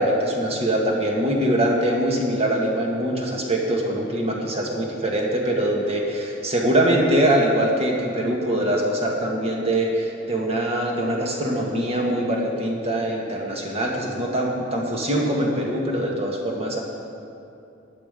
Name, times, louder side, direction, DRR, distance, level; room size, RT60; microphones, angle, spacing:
voice 1, 0.0-16.8, right 1 dB, 35° right, -1 dB, 1.8 m, -23 dB
14.5 x 10.0 x 5.2 m, 2.7 s
head